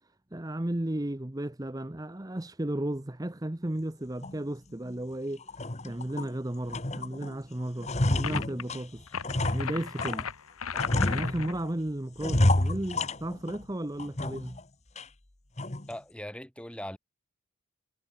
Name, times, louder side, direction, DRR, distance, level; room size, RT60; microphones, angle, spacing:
voice 1, 0.3-5.4 5.8-9.0 9.3-10.3 11.1-14.6, right 1 dB, 15° right, 0.8 m, -34 dB
sound 1, 4.2-4.4 4.9-5.0 5.4-6.3 6.7-7.3 7.6-10.2 10.7-11.7 12.2-13.6 14.0-14.6 15.0-15.1 15.6-15.9, left 1 dB, 30° left, 1.4 m, -29 dB
sound 2, 8.2-8.6 9.1-11.6, left 6 dB, 85° left, 1.5 m, -35 dB
voice 2, 15.9-17.0, left 1 dB, 5° left, 2.8 m, -40 dB
head